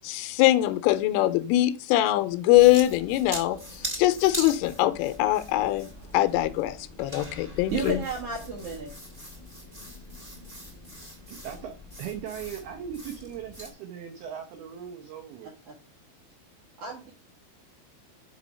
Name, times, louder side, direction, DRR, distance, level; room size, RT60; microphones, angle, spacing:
voice 1, 0.0-8.0, left 15 dB, 85° left, 3.1 m, -23 dB
sound 1, 2.5-13.7, equal, 15° right, 1.3 m, -41 dB
voice 2, 7.7-8.9 15.4-15.8 16.8-17.1, right 4 dB, 70° right, 1.9 m, -32 dB
voice 3, 11.3-15.5, right 9 dB, 90° right, 2.1 m, -39 dB
6.8 x 5.6 x 5.2 m
omnidirectional pair, 5.8 m